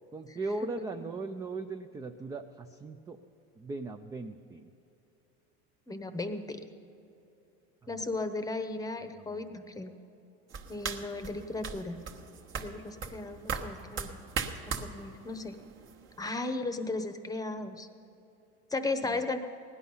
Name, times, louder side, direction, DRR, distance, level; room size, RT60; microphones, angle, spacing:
voice 1, 0.1-3.2 3.6-4.7 9.3-9.4 19.0-19.2, right 3 dB, 10° right, 6 dB, 0.4 m, -38 dB
voice 2, 5.9-6.6 7.9-9.9 10.7-12.0 12.5-14.2 14.6-15.5 16.2-17.9 18.7-19.4, left 3 dB, 10° left, 9 dB, 0.9 m, -35 dB
sound 1, 10.5-16.3, right 5 dB, 40° right, 1.2 m, -39 dB
17.0 x 11.0 x 5.5 m, 2.8 s
supercardioid pair, 125°, 31 cm